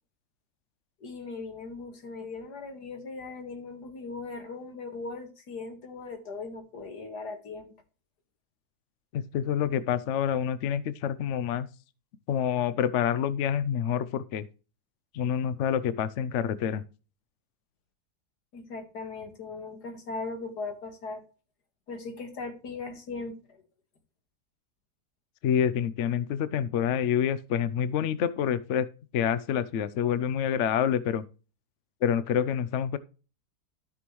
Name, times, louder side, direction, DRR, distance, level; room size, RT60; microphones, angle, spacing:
voice 1, 1.0-7.7 18.5-21.2 21.9-23.6, left 3 dB, 85° left, 2.3 m, -39 dB
voice 2, 9.1-11.7 12.3-14.5 15.1-16.8 25.4-28.9 29.1-31.2 32.0-33.0, left 8 dB, 60° left, 0.8 m, -27 dB
13.0 x 6.1 x 3.1 m
omnidirectional pair, 1.7 m